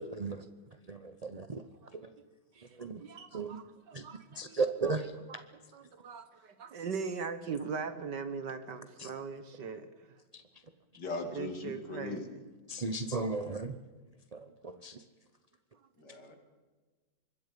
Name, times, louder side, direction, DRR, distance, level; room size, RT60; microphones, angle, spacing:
voice 1, 0.1-0.4 0.9-1.6 1.9-2.0 2.8-3.0 3.3-3.6 3.9-4.0 4.4-5.1 9.0-9.1 12.7-13.8 14.3-15.0, right 3 dB, 45° right, 0.5 m, -35 dB
voice 2, 3.0-4.9 5.3-9.9 11.3-12.4 16.2-16.3, right 5 dB, 65° right, 2.0 m, -40 dB
voice 3, 11.0-12.2 16.0-16.4, left 3 dB, 60° left, 3.3 m, -39 dB
25.0 x 21.5 x 5.3 m
omnidirectional pair, 2.1 m